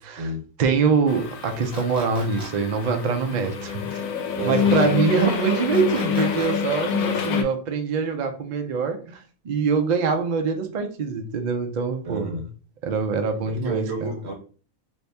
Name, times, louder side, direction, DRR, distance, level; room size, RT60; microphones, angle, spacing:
voice 1, 0.0-0.3 0.6-4.0 4.4-12.4 12.8-14.1, right 5 dB, 90° right, 0.3 m, -24 dB
sound 1, 1.1-7.4, left 7 dB, 75° left, 1.0 m, -26 dB
sound 2, 1.7-2.5 5.7-6.5, right 1 dB, 5° right, 1.2 m, -39 dB
voice 2, 4.4-4.7 12.0-12.4 13.5-14.3, right 2 dB, 55° right, 1.1 m, -31 dB
2.7 x 2.7 x 3.3 m
omnidirectional pair, 1.4 m